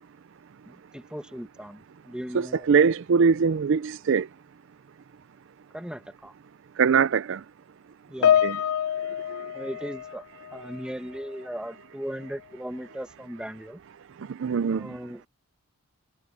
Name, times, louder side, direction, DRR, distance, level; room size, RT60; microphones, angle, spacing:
voice 1, 0.7-2.6 5.7-6.3 8.1-8.5 9.5-10.2 10.5-13.8 14.7-15.2, equal, 5° right, 1.3 m, -37 dB
voice 2, 2.3-4.3 6.8-7.4 8.4-8.6 9.3-9.5 14.4-14.9, right 6 dB, 60° right, 0.4 m, -22 dB
Piano, 8.2-10.9 11.1-11.5 12.2-12.4, left 9 dB, 70° left, 0.5 m, -26 dB
head